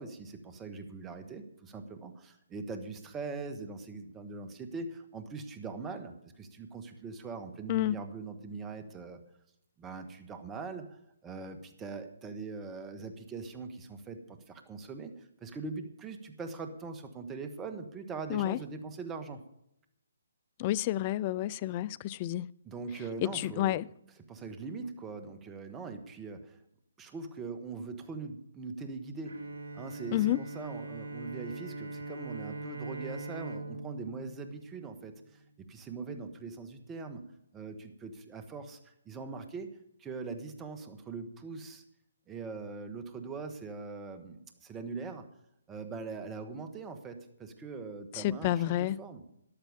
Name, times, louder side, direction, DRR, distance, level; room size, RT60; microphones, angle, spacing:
voice 1, 0.0-9.2 9.8-19.4 22.6-23.8 24.3-26.6 27.0-29.4 29.7-35.4 35.7-38.8 39.0-39.7 40.0-41.8 42.3-45.2 45.7-49.2, right 4 dB, 15° right, 1.5 m, -42 dB
voice 2, 20.6-22.5 23.2-23.9 30.1-30.4 48.1-49.0, left 14 dB, 30° left, 0.4 m, -30 dB
Bowed string instrument, 29.3-35.4, right 2 dB, 70° right, 2.3 m, -42 dB
13.5 x 11.0 x 5.3 m
figure-of-eight pair, 140°, 0 cm